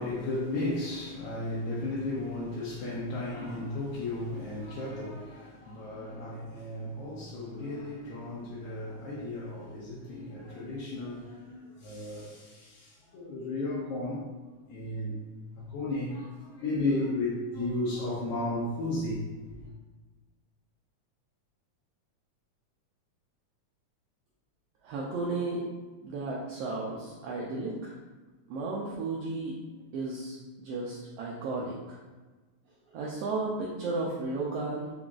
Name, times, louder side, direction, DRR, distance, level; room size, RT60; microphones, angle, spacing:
voice 1, 0.0-14.3 14.7-15.2 15.6-19.2, left 2 dB, 80° left, 2.1 m, -34 dB
voice 2, 24.8-25.7 26.0-28.0 28.5-29.6 29.9-32.0 32.9-34.9, right 3 dB, 80° right, 1.4 m, -34 dB
4.9 x 3.8 x 2.3 m
omnidirectional pair, 3.3 m